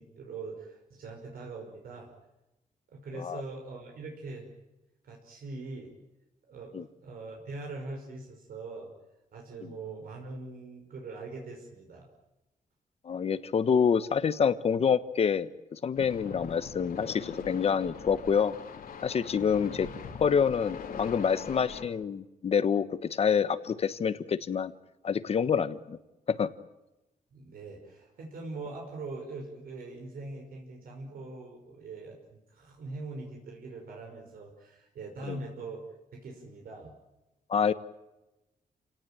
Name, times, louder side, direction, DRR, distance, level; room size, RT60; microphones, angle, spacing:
voice 1, 0.0-2.1 2.9-4.5 5.0-5.9 6.5-8.9 9.3-12.1 19.3-19.5 27.3-35.8 36.1-36.9, right 3 dB, 85° right, 1 dB, 5.7 m, -42 dB
voice 2, 13.0-18.5 19.0-19.9 20.2-24.7 25.0-26.0 26.3-26.5 35.3-35.4 37.5-37.7, left 6 dB, 45° left, 13 dB, 1.2 m, -27 dB
sound 1, 15.9-21.8, left 6 dB, 85° left, 3.6 m, -42 dB
30.0 x 18.0 x 9.1 m, 0.97 s
wide cardioid pair, 180°, 15 cm